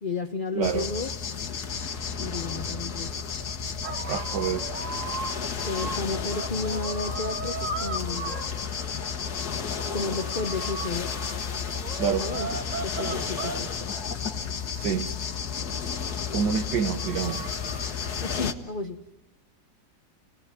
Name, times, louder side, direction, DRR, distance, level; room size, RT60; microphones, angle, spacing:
voice 1, 0.0-1.1 1.4-1.9 2.2-3.2 5.4-8.4 9.9-11.1 12.2-12.5 12.8-13.9 18.2-19.0, left 3 dB, 35° left, 6 dB, 0.9 m, -33 dB
sound 1, 0.6-18.5, left 6 dB, 60° left, 1.8 m, -32 dB
voice 2, 0.6-0.9 4.0-4.7 12.0-12.3 14.7-15.1 16.3-17.6, right 7 dB, 70° right, 6 dB, 1.7 m, -27 dB
sound 2, 3.8-18.1, right 4 dB, 45° right, 1.8 m, -38 dB
29.5 x 18.0 x 9.7 m, 1.1 s
omnidirectional pair, 1.9 m